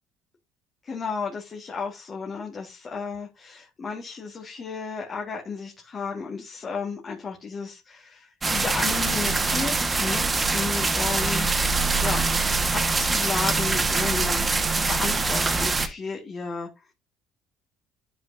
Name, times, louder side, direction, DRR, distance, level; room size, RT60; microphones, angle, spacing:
voice 1, 0.8-11.5 12.0-12.3 12.7-16.7, left 5 dB, 35° left, 1 dB, 1.7 m, -33 dB
sound 1, 8.4-15.9, right 3 dB, 25° right, 1.2 m, -24 dB
11.0 x 5.1 x 2.6 m, 0.22 s
supercardioid pair, 90°, 0 cm